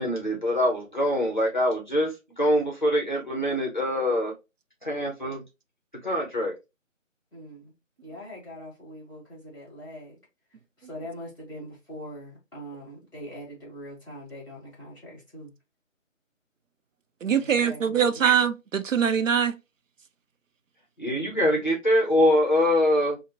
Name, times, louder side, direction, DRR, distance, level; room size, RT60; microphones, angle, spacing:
voice 1, 0.0-4.3 4.8-5.4 6.0-6.5 21.0-23.2, left 1 dB, 35° left, 0.7 m, -24 dB
voice 2, 7.3-7.7 8.0-10.2 10.8-15.5 17.4-18.2, equal, 15° left, 1.3 m, -42 dB
voice 3, 17.2-19.5, right 7 dB, 70° right, 0.5 m, -23 dB
3.3 x 2.1 x 2.7 m
figure-of-eight pair, 165°, 39 cm